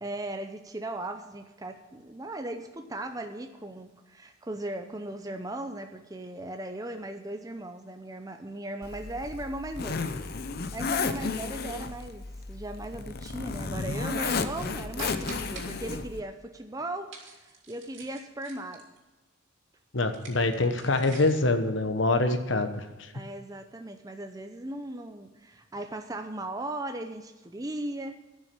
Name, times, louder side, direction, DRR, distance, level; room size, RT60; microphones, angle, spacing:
voice 1, 0.0-10.0 10.7-17.1 17.4-18.8 23.1-28.2, right 1 dB, 15° right, 6 dB, 0.6 m, -37 dB
Zipper (clothing), 8.8-16.2, left 4 dB, 50° left, 0.7 m, -33 dB
sound 1, 15.0-15.7 17.1-19.0 20.0-21.5, right 3 dB, 65° right, 2.6 m, -45 dB
voice 2, 19.9-23.1, left 2 dB, 65° left, 8 dB, 1.1 m, -25 dB
11.5 x 6.4 x 8.4 m, 1.1 s
head